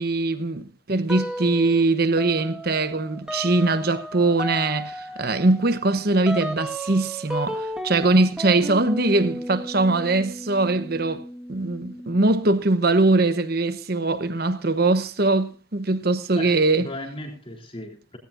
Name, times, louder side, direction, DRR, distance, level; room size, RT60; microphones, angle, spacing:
voice 1, 0.0-11.2 11.5-16.9, right 2 dB, 50° right, 1.0 m, -22 dB
sound 1, 1.1-1.8 2.2-12.5, equal, 5° right, 1.5 m, -34 dB
voice 2, 16.3-18.2, left 1 dB, 25° left, 3.6 m, -37 dB
18.0 x 17.0 x 2.6 m
head